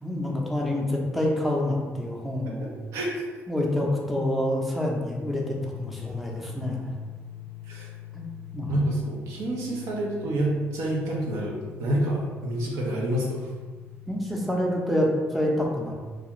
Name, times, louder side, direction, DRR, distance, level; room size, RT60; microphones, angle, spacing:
voice 1, 0.0-2.7 3.5-6.9 8.1-8.2 8.5-8.7 14.1-15.9, left 1 dB, ahead, -2 dB, 0.5 m, -27 dB
voice 2, 2.5-3.3 7.7-7.9 8.7-13.5, right 1 dB, 80° right, -3 dB, 0.7 m, -28 dB
sound 1, 5.4-14.8, left 14 dB, 60° left, 0.5 m, -43 dB
2.3 x 2.3 x 2.9 m, 1.4 s
cardioid pair, 95°, 5 cm